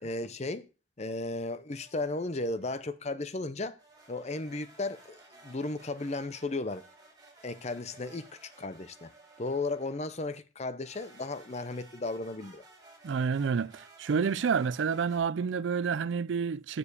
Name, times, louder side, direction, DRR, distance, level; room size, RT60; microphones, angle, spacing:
voice 1, 0.0-0.7 1.0-3.8 4.1-6.8 7.4-9.1 9.4-12.6, left 2 dB, 35° left, 0.6 m, -35 dB
sound 1, 1.7-2.7 3.8-10.2 10.8-15.2, right 2 dB, 20° right, 2.7 m, -56 dB
voice 2, 13.0-16.8, right 6 dB, 70° right, 0.4 m, -29 dB
7.3 x 6.9 x 6.7 m
head